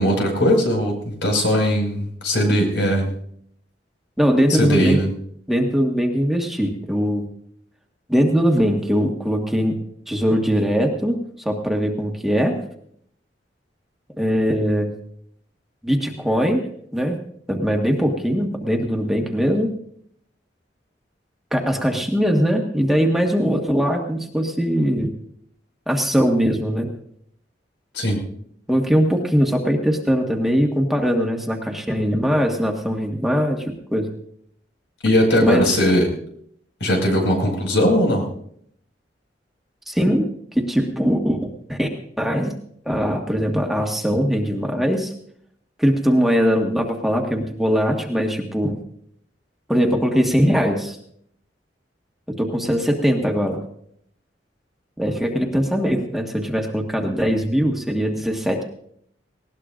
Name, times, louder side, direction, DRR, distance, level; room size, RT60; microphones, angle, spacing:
voice 1, 0.0-3.1 4.5-5.1 27.9-28.2 35.0-36.1 36.8-38.2, equal, 80° left, 2 dB, 5.6 m, -19 dB
voice 2, 4.2-5.0 5.5-7.2 8.1-9.7 10.1-11.2 11.4-12.5 14.2-14.9 15.8-16.6 16.9-17.2 17.5-19.7 21.5-25.1 25.9-26.9 28.7-34.1 35.4-35.8 39.9-40.3 40.5-41.4 41.7-41.9 42.2-42.5 42.8-45.1 45.8-48.8 49.7-51.0 52.4-53.6 55.0-58.6, equal, ahead, 1 dB, 1.6 m, -21 dB
19.5 x 18.0 x 2.6 m, 0.66 s
head